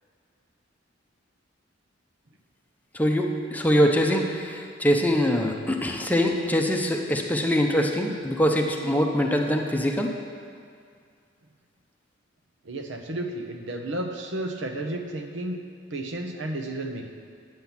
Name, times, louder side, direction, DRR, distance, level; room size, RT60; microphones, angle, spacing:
voice 1, 2.9-10.1, equal, 10° left, 2 dB, 0.7 m, -23 dB
voice 2, 12.6-15.6 15.9-17.1, right 1 dB, 65° right, 4 dB, 1.1 m, -32 dB
9.5 x 7.7 x 7.2 m, 2.2 s
head